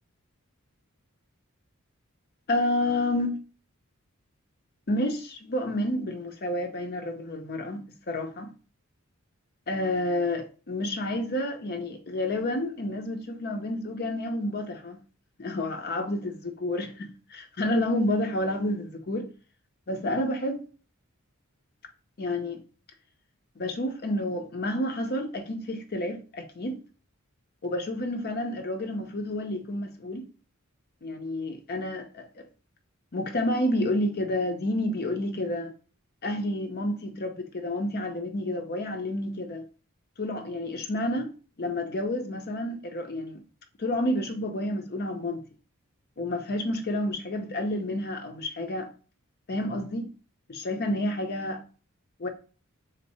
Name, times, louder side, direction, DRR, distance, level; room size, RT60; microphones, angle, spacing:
voice 1, 2.5-3.4 4.9-8.5 9.7-15.0 15.4-19.3 19.9-20.6 22.2-22.6 23.6-26.8 27.6-30.3 31.0-32.4 33.1-35.7 36.2-39.6 40.2-41.3 41.6-43.4 43.8-45.4 46.2-48.9 49.5-50.1 50.5-51.6 52.2-52.3, left 1 dB, 45° left, 0.6 m, -30 dB
3.7 x 2.7 x 4.1 m
head